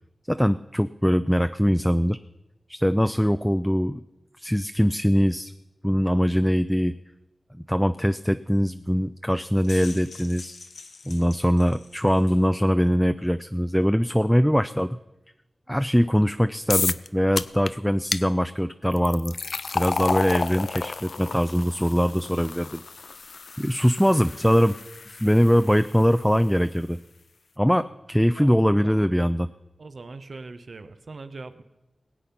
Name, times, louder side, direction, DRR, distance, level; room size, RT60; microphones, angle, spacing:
voice 1, 0.3-2.2 2.7-4.0 4.4-5.5 5.8-6.9 7.5-10.6 11.1-15.0 15.7-19.3 19.7-22.8 23.6-24.8 25.1-27.0 27.6-29.5, equal, ahead, 11 dB, 0.4 m, -22 dB
sound 1, 9.4-12.5, left 4 dB, 90° left, 1.0 m, -44 dB
sound 2, 16.7-17.1 17.4-17.7 18.1-18.2 18.9-26.0, left 4 dB, 70° left, 0.4 m, -31 dB
voice 2, 28.4-29.1 29.8-31.6, right 3 dB, 65° right, 10 dB, 1.0 m, -41 dB
20.0 x 8.5 x 5.8 m, 0.99 s
wide cardioid pair, 75°, 0 cm